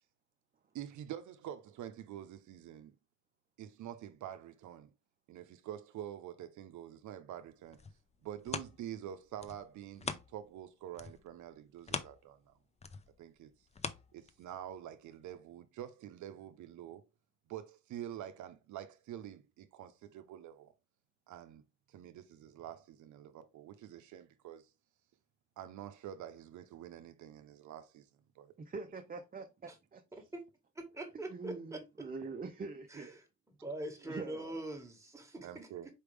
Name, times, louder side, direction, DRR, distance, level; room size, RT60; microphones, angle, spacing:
voice 1, 0.7-2.9 3.6-4.9 5.3-7.8 8.2-12.5 13.2-13.5 14.1-17.0 17.5-20.7 21.3-21.6 21.9-24.7 25.6-28.1 28.4-28.5 35.4-35.9, right 11 dB, 75° right, 0.6 m, -47 dB
sound 1, 7.5-10.6 10.9-14.7 15.2-15.3, left 5 dB, 20° left, 0.5 m, -44 dB
voice 2, 28.6-30.2 31.3-33.1 34.1-34.6, right 4 dB, 30° right, 0.7 m, -44 dB
voice 3, 30.7-32.1 32.9-33.2 33.6-35.7, right 1 dB, 10° right, 1.5 m, -43 dB
4.5 x 3.4 x 3.3 m
cardioid pair, 90°, 30 cm